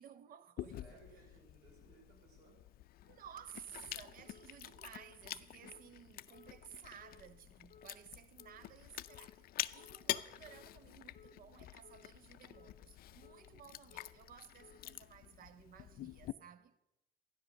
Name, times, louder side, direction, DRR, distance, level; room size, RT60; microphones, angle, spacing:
voice 1, 0.0-1.0 3.0-16.8, right 9 dB, 60° right, 0.9 m, -56 dB
Chewing mastication, 0.6-16.3, left 14 dB, 60° left, 0.5 m, -47 dB
voice 2, 0.7-2.6, right 3 dB, 85° right, 5.3 m, -62 dB
sound 1, 4.3-4.5 4.9-5.2 5.6-5.8 6.3-6.5 7.0-7.2 7.7-7.9 8.4-8.6 9.1-9.3 9.8-10.0 10.5-10.7 11.1-11.4 11.8-12.0 12.5-12.7 13.2-13.4 13.9-14.1 14.6-14.8, left 5 dB, 30° left, 1.9 m, -61 dB
12.5 x 10.5 x 6.4 m
cardioid pair, 110°, 17 cm